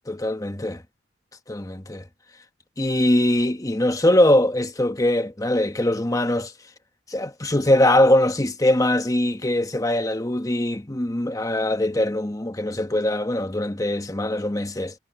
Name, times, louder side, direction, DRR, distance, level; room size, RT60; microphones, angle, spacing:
voice 1, 0.1-0.8 1.5-2.0 2.8-6.5 7.1-14.9, left 1 dB, 20° left, 1.1 m, -22 dB
head